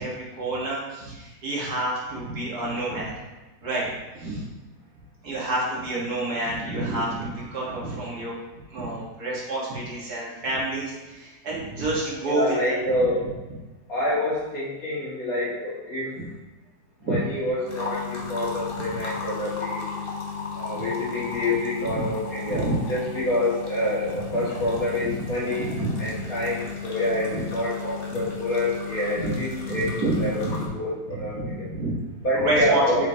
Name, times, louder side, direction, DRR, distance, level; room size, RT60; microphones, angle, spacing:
voice 1, 0.0-3.1 3.6-4.4 5.2-8.3 8.7-12.8 17.0-17.2 18.7-18.8 20.7-20.9 21.8-22.0 22.4-22.8 25.0-25.3 25.6-26.5 27.2-27.4 28.1-28.2 29.2-29.4 29.7-30.7 31.3-33.1, right 2 dB, 65° right, -5 dB, 2.1 m, -29 dB
voice 2, 12.3-13.2 13.9-16.2 17.0-19.8 20.5-25.7 26.0-29.9 30.2-30.3 30.7-31.6 32.2-33.0, left 1 dB, 55° left, -8 dB, 2.5 m, -27 dB
sound 1, 17.7-30.7, left 6 dB, 35° left, 1.2 m, -35 dB
7.9 x 5.0 x 2.9 m, 1.1 s
omnidirectional pair, 1.8 m